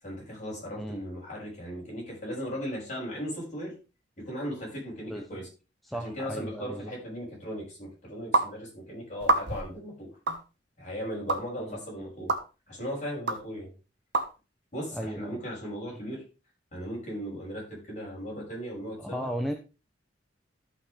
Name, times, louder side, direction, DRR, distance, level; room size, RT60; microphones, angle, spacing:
voice 1, 0.0-3.7 4.2-5.5 6.0-10.2 10.8-12.4 12.7-13.7 14.7-16.2 16.7-19.3, equal, 40° left, -4 dB, 6.3 m, -37 dB
voice 2, 5.9-6.9 11.7-11.8 14.9-15.4 19.0-19.5, equal, ahead, 3 dB, 0.8 m, -35 dB
sound 1, 8.3-8.5 9.2-9.7 10.3-10.4 11.3-11.4 12.3-12.4 13.3-13.4 14.1-14.3, right 3 dB, 70° right, 1.2 m, -25 dB
13.5 x 6.0 x 3.3 m, 0.31 s
head